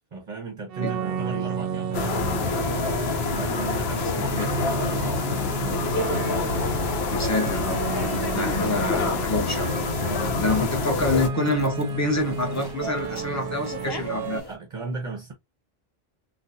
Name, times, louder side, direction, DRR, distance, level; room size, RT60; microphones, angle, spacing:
voice 1, 0.1-2.7 3.3-6.4 10.0-10.4 14.4-15.3, right 3 dB, 35° right, 0.8 m, -36 dB
sound 1, 0.7-14.4, right 5 dB, 70° right, 0.7 m, -32 dB
sound 2, 1.9-11.3, left 4 dB, 75° left, 0.9 m, -27 dB
voice 2, 4.1-4.5 7.1-9.7 10.4-14.4, left 2 dB, 20° left, 0.8 m, -27 dB
sound 3, 7.1-14.6, left 1 dB, 35° left, 0.4 m, -39 dB
3.9 x 2.3 x 2.6 m
omnidirectional pair, 1.0 m